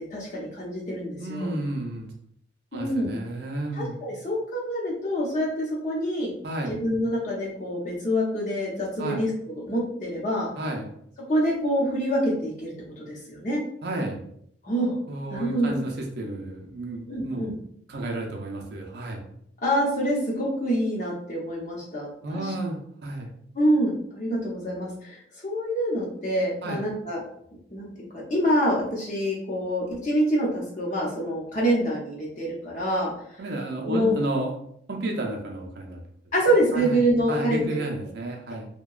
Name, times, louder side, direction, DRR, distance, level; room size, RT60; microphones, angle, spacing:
voice 1, 0.1-1.5 2.7-3.1 3.7-6.3 6.7-10.5 11.3-13.6 14.6-15.0 15.3-15.8 17.1-17.5 19.6-22.5 23.5-27.2 27.7-27.9 28.1-33.1 33.8-34.2 36.3-37.8, equal, 40° left, -4 dB, 0.7 m, -26 dB
voice 2, 1.2-2.1 2.7-3.9 6.4-6.8 9.0-9.2 10.6-10.9 13.8-14.2 15.1-17.5 17.9-19.2 22.2-23.3 26.6-26.8 33.4-34.5 34.9-36.0 36.7-37.0 37.3-38.7, right 1 dB, 60° right, 0 dB, 0.5 m, -31 dB
2.7 x 2.2 x 2.3 m, 0.70 s
head